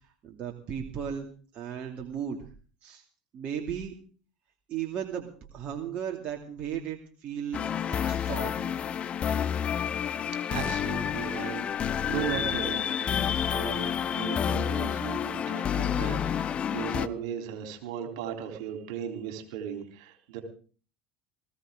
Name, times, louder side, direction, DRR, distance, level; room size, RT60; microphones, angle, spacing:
voice 1, 0.2-2.4 2.8-3.0 3.3-3.9 4.7-7.6 7.9-8.8, right 8 dB, 50° right, 2 dB, 2.6 m, -36 dB
sound 1, 7.5-17.1, left 8 dB, 40° left, 0.8 m, -29 dB
voice 2, 10.5-20.4, right 9 dB, 75° right, 4 dB, 3.8 m, -37 dB
20.0 x 16.0 x 3.8 m, 0.41 s
hypercardioid pair, 75°, 3 cm